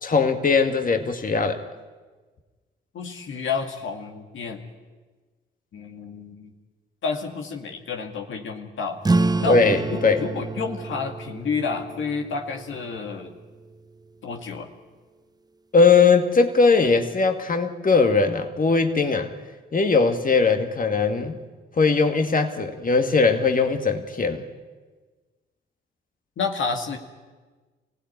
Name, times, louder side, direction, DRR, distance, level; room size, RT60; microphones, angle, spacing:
voice 1, 0.0-1.6 9.5-10.2 15.7-19.3 19.7-21.4 21.8-24.4, left 4 dB, 40° left, 6 dB, 2.1 m, -20 dB
voice 2, 2.9-4.6 5.7-6.5 7.0-9.0 9.4-13.3 14.2-14.7 26.4-27.0, left 5 dB, 70° left, 3 dB, 2.2 m, -30 dB
sound 1, 9.0-14.1, right 2 dB, 20° right, 0.9 m, -28 dB
24.0 x 16.5 x 9.7 m, 1.3 s
supercardioid pair, 50°, 21 cm